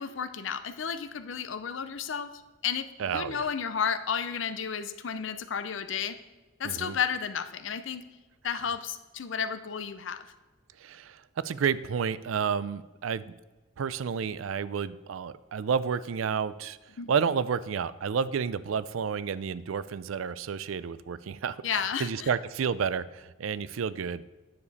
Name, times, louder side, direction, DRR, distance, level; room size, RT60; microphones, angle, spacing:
voice 1, 0.0-2.3 2.6-6.2 6.6-8.0 8.4-10.2 17.0-17.1 21.6-22.3, left 7 dB, 70° left, 11 dB, 0.6 m, -32 dB
voice 2, 3.0-3.5 6.6-7.0 10.8-13.3 13.8-16.8 17.1-24.2, right 6 dB, 90° right, 17 dB, 0.4 m, -30 dB
9.6 x 6.8 x 4.1 m, 1.2 s
head